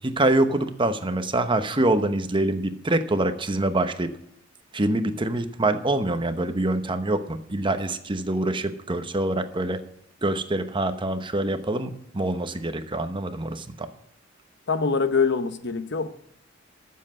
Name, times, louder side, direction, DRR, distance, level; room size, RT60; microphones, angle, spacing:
voice 1, 0.0-4.1 4.7-9.8 10.2-13.9, right 2 dB, 25° right, 9 dB, 1.0 m, -25 dB
voice 2, 14.7-16.1, left 5 dB, 60° left, 11 dB, 0.9 m, -24 dB
13.5 x 7.7 x 6.3 m, 0.75 s
head